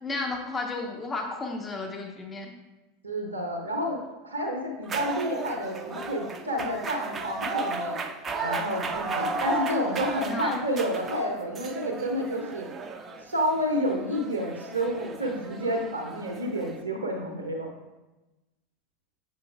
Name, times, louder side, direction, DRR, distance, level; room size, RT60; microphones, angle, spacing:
voice 1, 0.0-2.5 10.3-10.6, left 3 dB, 15° left, 2 dB, 0.9 m, -33 dB
voice 2, 3.0-8.0 8.4-12.7 13.2-17.7, equal, 80° right, 2 dB, 0.7 m, -30 dB
sound 1, 4.8-16.8, right 3 dB, 25° right, 0.5 m, -35 dB
7.8 x 5.2 x 2.3 m, 1.1 s
figure-of-eight pair, 80°, 0 cm